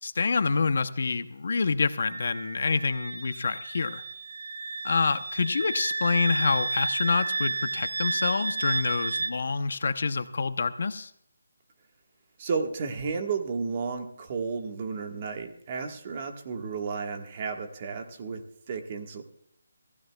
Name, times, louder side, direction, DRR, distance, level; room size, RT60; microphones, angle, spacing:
voice 1, 0.0-4.0 4.8-11.1, left 4 dB, 50° left, 12 dB, 0.8 m, -27 dB
Wind instrument woodwind instrument, 2.1-9.3, right 3 dB, 75° right, 1.4 m, -32 dB
voice 2, 12.4-19.2, right 5 dB, 25° right, 4 dB, 1.4 m, -33 dB
26.5 x 15.5 x 2.3 m, 0.71 s
hypercardioid pair, 175°, 0 cm